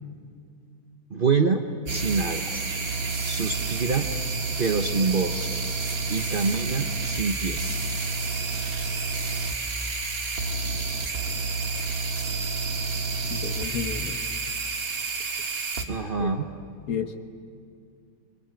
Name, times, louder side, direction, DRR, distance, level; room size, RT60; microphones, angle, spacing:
voice 1, 1.1-1.6 1.9-2.7 3.2-4.1 4.6-5.5 6.1-7.8 15.8-16.5, right 4 dB, 40° right, 5 dB, 1.1 m, -26 dB
sound 1, 1.9-15.9, right 3 dB, 65° right, 2.3 m, -29 dB
voice 2, 13.3-14.2 16.2-16.3 16.9-17.2, left 7 dB, 70° left, 8 dB, 1.8 m, -31 dB
25.5 x 25.0 x 9.1 m, 2.3 s
omnidirectional pair, 1.6 m